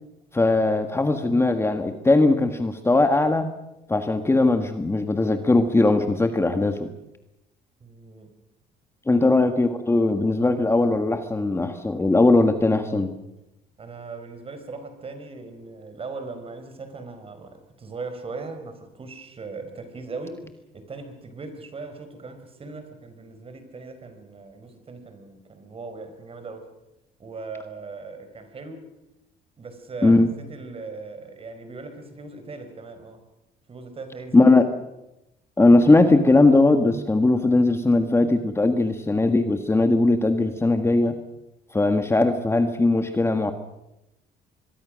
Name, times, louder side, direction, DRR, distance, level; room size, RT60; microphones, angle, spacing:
voice 1, 0.3-3.5 3.9-6.9 9.1-13.1 30.0-30.3 34.3-34.7 35.6-41.1 41.7-43.5, left 2 dB, 15° left, 7 dB, 1.6 m, -19 dB
voice 2, 7.8-8.3 9.1-9.3 13.8-20.4 20.7-26.7 27.2-28.9 29.6-33.2 33.7-34.5, right 3 dB, 35° right, 8 dB, 4.7 m, -39 dB
25.5 x 22.5 x 6.4 m, 0.89 s
cardioid pair, 110°, 17 cm